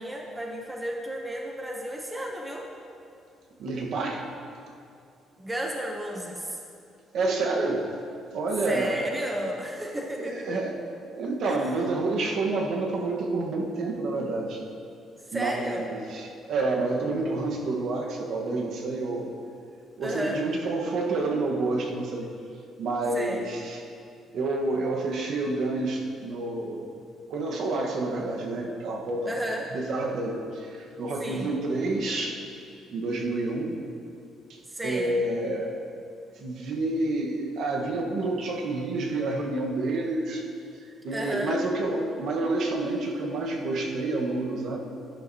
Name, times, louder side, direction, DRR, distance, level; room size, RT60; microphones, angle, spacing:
voice 1, 0.0-2.7 5.4-6.6 8.7-10.6 11.5-11.7 15.3-15.9 20.0-20.4 23.1-23.4 29.3-29.7 31.2-31.6 34.7-35.2 41.1-41.5, right 1 dB, 10° right, 1 dB, 0.7 m, -33 dB
voice 2, 3.6-4.3 7.1-7.9 8.3-9.3 10.2-10.8 11.1-14.6 15.3-19.3 20.0-22.3 22.8-23.8 24.3-26.9 27.3-29.3 29.7-32.4 32.9-33.8 34.5-35.8 36.4-40.4 40.8-44.8, right 2 dB, 60° right, 1 dB, 1.2 m, -29 dB
12.0 x 11.5 x 2.8 m, 2.5 s
cardioid pair, 165°, 0 cm